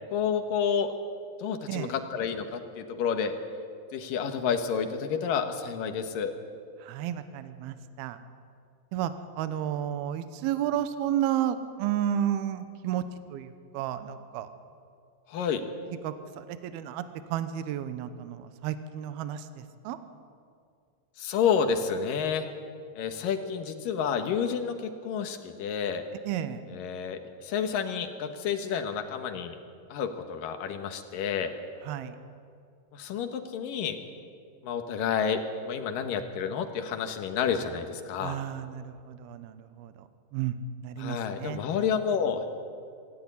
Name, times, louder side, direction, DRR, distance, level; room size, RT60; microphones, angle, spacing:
voice 1, 0.1-0.9 1.4-3.3 3.9-6.3 15.3-15.6 21.2-22.5 23.0-26.0 26.7-29.6 29.9-31.5 32.9-34.0 34.6-38.4 41.0-42.4, left 7 dB, 65° left, 7 dB, 2.6 m, -30 dB
voice 2, 6.8-8.2 8.9-13.0 13.3-14.5 16.0-17.0 17.3-20.0 26.3-26.6 31.9-32.2 38.2-39.9 40.3-40.5 40.8-41.6, right 11 dB, 75° right, 11 dB, 2.7 m, -32 dB
26.0 x 13.5 x 9.9 m, 2.3 s
omnidirectional pair, 5.0 m